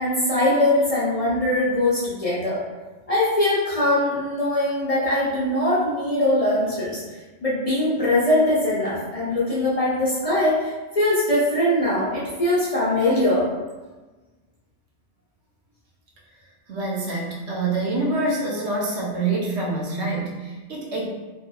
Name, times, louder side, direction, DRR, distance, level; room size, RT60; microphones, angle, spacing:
voice 1, 0.0-2.6 3.1-7.0 7.4-13.5, left 1 dB, 40° left, -9 dB, 0.6 m, -21 dB
voice 2, 16.7-21.1, right 2 dB, 75° right, -4 dB, 1.0 m, -26 dB
2.7 x 2.5 x 2.3 m, 1.2 s
omnidirectional pair, 1.2 m